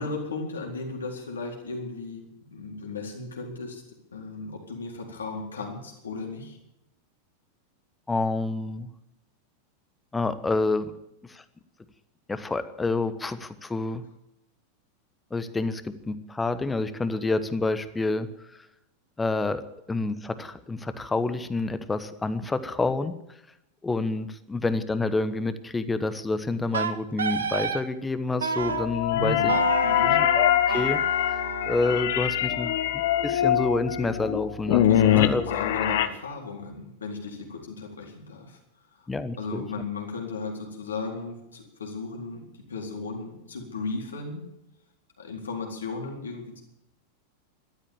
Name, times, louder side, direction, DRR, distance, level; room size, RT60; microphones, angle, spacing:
voice 1, 0.0-3.8 4.1-6.6 29.1-30.2 34.9-38.6 39.0-39.1 39.4-44.4 45.2-46.6, left 3 dB, 70° left, 1 dB, 4.1 m, -35 dB
voice 2, 8.1-8.9 10.1-10.9 11.3-11.4 12.3-14.0 15.3-18.6 19.2-19.6 19.9-23.2 23.8-29.5 30.3-31.4 31.6-32.7 33.2-35.4 39.1-39.6, left 3 dB, 10° left, 12 dB, 1.2 m, -28 dB
Wind instrument woodwind instrument, 26.7-27.8 28.4-28.9 29.5-32.5, right 5 dB, 70° right, 1.2 m, -31 dB
sound 1, 28.6-36.1, left 11 dB, 55° left, 1.1 m, -23 dB
13.5 x 13.0 x 7.3 m, 0.84 s
figure-of-eight pair, 90°, 0 cm